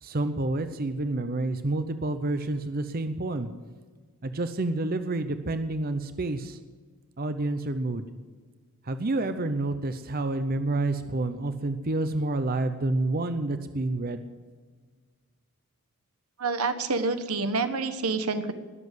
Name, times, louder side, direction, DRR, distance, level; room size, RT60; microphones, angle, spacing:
voice 1, 0.0-3.5 4.2-6.6 7.2-8.1 8.8-14.3, right 2 dB, 45° right, 10 dB, 0.7 m, -29 dB
voice 2, 16.4-18.5, right 3 dB, 90° right, 9 dB, 1.3 m, -27 dB
20.5 x 7.5 x 8.1 m, 1.5 s
head